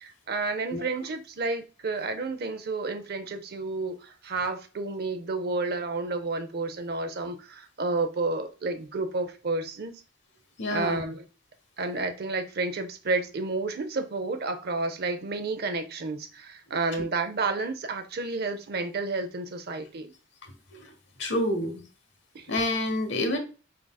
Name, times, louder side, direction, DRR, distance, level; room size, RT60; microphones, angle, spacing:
voice 1, 0.0-9.9 10.7-11.2 11.8-20.1 22.3-22.5, right 3 dB, 55° right, 0.6 m, -31 dB
voice 2, 10.6-11.0 20.4-20.9 21.2-21.8 22.5-23.4, left 1 dB, 65° left, 1.0 m, -28 dB
4.8 x 3.8 x 2.2 m
head